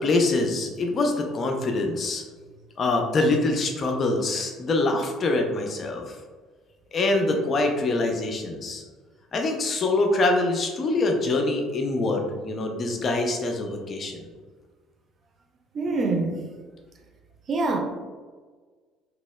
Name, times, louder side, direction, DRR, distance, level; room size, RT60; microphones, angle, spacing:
voice 1, 0.0-2.2 2.8-6.0 6.9-8.8 9.3-14.2, left 2 dB, 40° left, 3 dB, 0.6 m, -24 dB
voice 2, 15.7-16.4 17.5-17.8, right 3 dB, 40° right, 3 dB, 0.5 m, -25 dB
4.0 x 3.0 x 2.3 m, 1.4 s
figure-of-eight pair, 55°, 0 cm